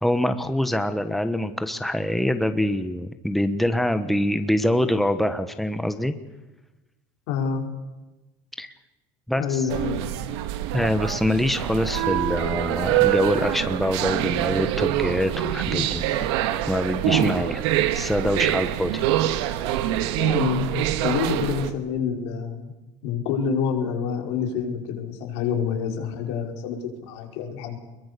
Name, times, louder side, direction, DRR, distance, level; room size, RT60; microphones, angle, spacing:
voice 1, 0.0-6.1 8.6-8.7 9.3-9.7 10.7-16.1 16.7-17.6 17.9-18.9, left 1 dB, ahead, 9 dB, 1.3 m, -24 dB
voice 2, 7.3-7.7 9.3-10.1 15.7-15.9 20.1-22.7 23.0-27.8, left 6 dB, 85° left, 2 dB, 5.3 m, -27 dB
sound 1, 9.7-21.7, right 12 dB, 85° right, 1.8 m, -25 dB
24.0 x 22.0 x 6.9 m, 1.1 s
cardioid pair, 125°, 14 cm